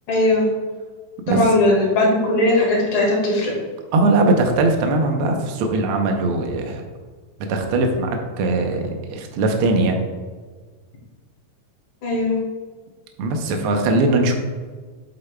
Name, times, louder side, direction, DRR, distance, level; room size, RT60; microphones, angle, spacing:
voice 1, 0.1-0.5 1.3-3.5 12.0-12.4, left 1 dB, 70° left, -3 dB, 3.2 m, -18 dB
voice 2, 3.9-6.8 7.5-10.0 13.2-14.3, right 2 dB, 90° right, 3 dB, 1.2 m, -20 dB
8.2 x 8.0 x 2.2 m, 1.4 s
omnidirectional pair, 3.5 m